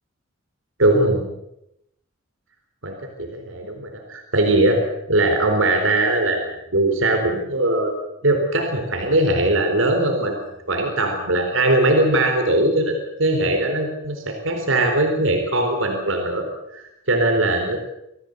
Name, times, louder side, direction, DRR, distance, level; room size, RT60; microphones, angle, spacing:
voice 1, 0.8-1.3 2.8-4.8 5.1-7.9 8.2-10.4 10.7-12.9 13.2-16.5 16.7-17.8, right 2 dB, 75° right, 3 dB, 4.2 m, -20 dB
26.0 x 16.5 x 8.2 m, 0.84 s
head